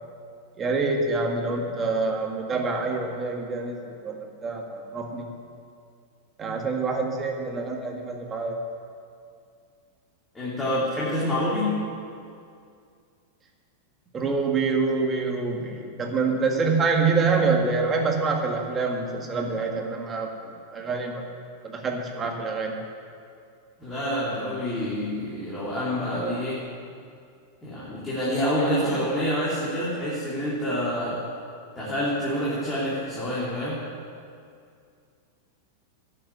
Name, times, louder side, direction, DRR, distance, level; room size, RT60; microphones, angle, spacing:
voice 1, 0.6-5.3 6.4-8.6 14.1-21.3 21.6-22.7, right 4 dB, 25° right, 2 dB, 1.8 m, -26 dB
voice 2, 10.3-11.8 23.8-26.6 27.6-31.2 31.7-33.8, equal, 15° left, -8 dB, 3.0 m, -27 dB
11.5 x 7.0 x 9.6 m, 2.4 s
hypercardioid pair, 130°, 0 cm